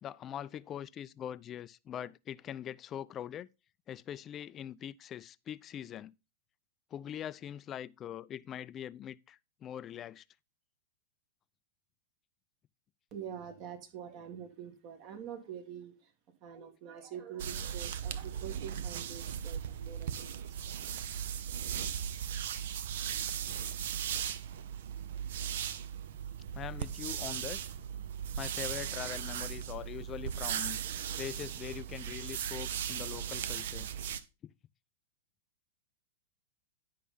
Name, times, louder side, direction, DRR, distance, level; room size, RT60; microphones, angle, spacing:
voice 1, 0.0-3.5 3.9-6.1 6.9-10.2 26.5-27.6 28.4-30.8 31.2-33.9 34.4-34.5, left 10 dB, 30° left, 0.4 m, -42 dB
voice 2, 13.1-16.1 16.4-21.0, right 9 dB, 45° right, 1.8 m, -46 dB
sound 1, 17.4-34.2, right 9 dB, 65° right, 0.7 m, -37 dB
10.0 x 5.4 x 3.9 m
hypercardioid pair, 105°, 0 cm